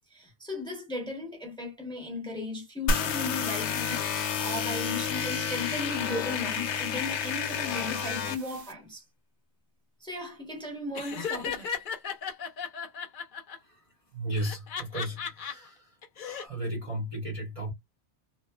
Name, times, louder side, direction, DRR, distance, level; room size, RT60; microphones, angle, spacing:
voice 1, 0.1-9.0 10.0-11.7, left 2 dB, 5° left, 0.9 m, -36 dB
sound 1, 2.9-8.4, left 6 dB, 80° left, 0.9 m, -30 dB
sound 2, 3.7-8.7, right 7 dB, 75° right, 0.9 m, -49 dB
Laughter, 10.9-13.6 14.4-15.5 16.0-16.4, left 6 dB, 55° left, 0.7 m, -35 dB
voice 2, 14.1-15.9 16.2-17.7, right 1 dB, 30° right, 0.9 m, -35 dB
2.9 x 2.2 x 2.2 m
omnidirectional pair, 1.2 m